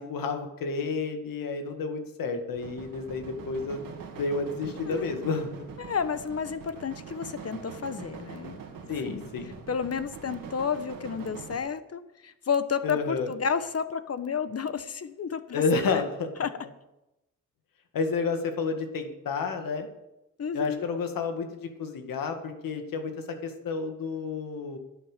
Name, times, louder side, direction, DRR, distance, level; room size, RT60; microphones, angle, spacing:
voice 1, 0.0-3.8 4.1-5.5 8.9-9.6 12.8-13.3 15.5-16.3 17.9-19.9 20.5-24.8, left 4 dB, 90° left, 6 dB, 1.9 m, -30 dB
sound 1, 2.5-11.6, right 6 dB, 85° right, 2.2 m, -43 dB
voice 2, 4.8-5.1 5.8-8.6 9.0-9.3 9.7-15.6 16.4-16.5 20.4-20.9, left 6 dB, 45° left, 11 dB, 1.2 m, -31 dB
11.0 x 9.1 x 7.3 m, 0.91 s
cardioid pair, 80°, 33 cm